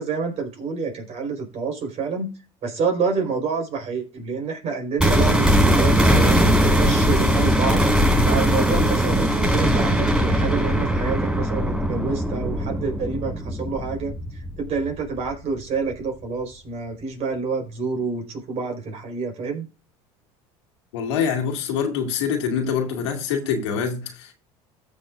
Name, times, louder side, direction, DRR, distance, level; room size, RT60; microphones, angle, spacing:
voice 1, 0.0-2.3 2.6-7.9 8.2-14.1 14.6-19.6, right 4 dB, 50° right, 4.3 m, -28 dB
sound 1, 5.0-15.0 15.3-15.4, equal, 5° right, 4.8 m, -20 dB
voice 2, 20.9-24.3, left 6 dB, 90° left, 2.2 m, -25 dB
14.5 x 6.7 x 2.5 m
supercardioid pair, 90°, 14 cm